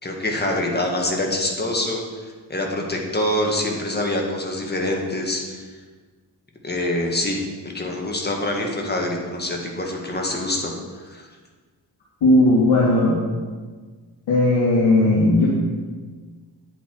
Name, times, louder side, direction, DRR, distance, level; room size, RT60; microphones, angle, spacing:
voice 1, 0.0-2.0 2.5-5.6 6.6-7.4 7.7-10.7 11.1-11.3, left 1 dB, 20° left, 0 dB, 1.9 m, -25 dB
voice 2, 12.2-13.2 14.3-15.5, left 2 dB, 70° left, -7 dB, 2.4 m, -16 dB
9.9 x 8.4 x 4.7 m, 1.4 s
cardioid pair, 110°, 45 cm